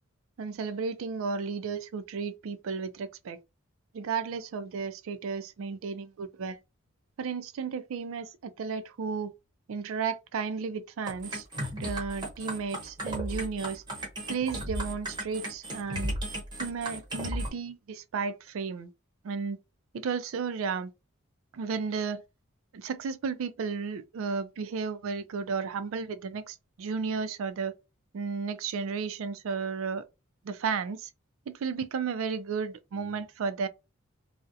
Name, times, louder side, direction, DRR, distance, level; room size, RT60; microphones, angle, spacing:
voice 1, 0.4-3.4 3.9-6.6 7.2-9.3 9.7-11.5 11.8-13.8 14.3-16.1 16.6-18.9 19.2-19.6 19.9-20.9 21.5-22.2 22.7-27.7 28.1-30.0 30.4-31.1 31.5-33.7, right 5 dB, 70° right, 0.4 m, -33 dB
sound 1, 11.1-17.5, right 1 dB, 20° right, 0.8 m, -35 dB
2.4 x 2.0 x 2.6 m
head